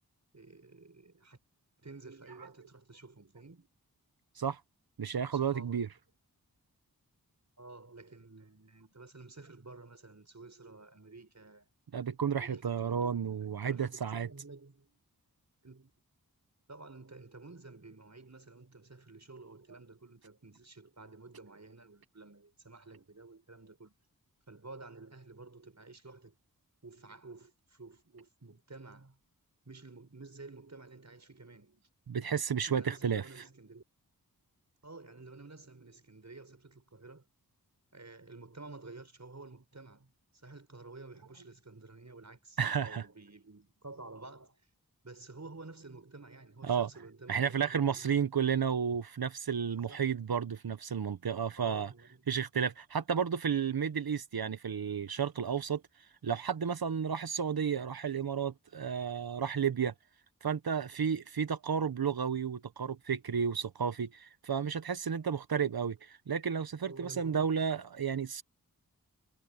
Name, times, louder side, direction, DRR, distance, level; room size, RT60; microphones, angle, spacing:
voice 1, 0.3-1.4 1.8-3.7 5.1-5.9 7.6-11.7 12.3-15.0 15.6-15.9 16.7-23.9 24.5-26.4 26.8-29.2 29.6-31.9 32.7-33.8 34.8-37.2 37.9-44.6 45.0-48.2 49.9-50.1 51.6-52.3 66.8-67.6, right 3 dB, 50° right, 6.3 m, -51 dB
voice 2, 5.0-5.9 11.9-14.3 32.1-33.2 42.6-43.0 46.6-46.9 47.3-51.9 52.3-55.8 56.2-59.9 60.4-68.4, right 7 dB, 80° right, 1.0 m, -32 dB
wide cardioid pair, 70°, 36 cm